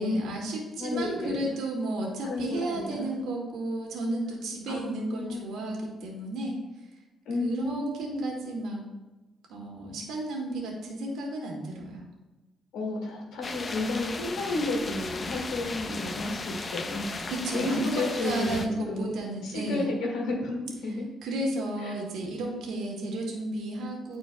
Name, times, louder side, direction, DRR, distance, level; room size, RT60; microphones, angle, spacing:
voice 1, 0.0-6.6 7.4-8.8 9.5-12.0 17.3-19.9 21.2-24.2, right 1 dB, 80° right, -1 dB, 1.7 m, -33 dB
voice 2, 0.8-1.5 2.2-3.1 4.7-5.4 7.3-8.2 12.7-17.0 17.5-19.1 19.4-21.1 21.8-21.9, left 2 dB, 85° left, -1 dB, 2.0 m, -32 dB
sound 1, 13.4-18.7, left 3 dB, 35° left, 0.5 m, -36 dB
10.5 x 4.4 x 2.2 m, 1.1 s
cardioid pair, 90°, 0 cm